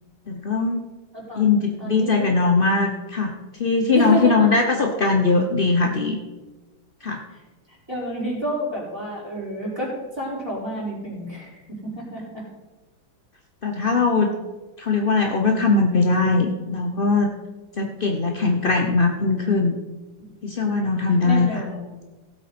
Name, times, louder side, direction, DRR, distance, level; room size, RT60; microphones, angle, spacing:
voice 1, 0.3-0.8 1.3-3.3 3.6-6.2 7.0-7.2 13.6-14.3 14.8-17.3 17.8-19.8 20.4-21.5, left 4 dB, 55° left, 3 dB, 0.5 m, -20 dB
voice 2, 1.1-2.9 3.9-4.5 7.3-12.4 20.2-20.3 20.8-21.9, right 1 dB, 10° right, -7 dB, 4.9 m, -30 dB
17.0 x 8.0 x 4.3 m, 1.2 s
omnidirectional pair, 2.2 m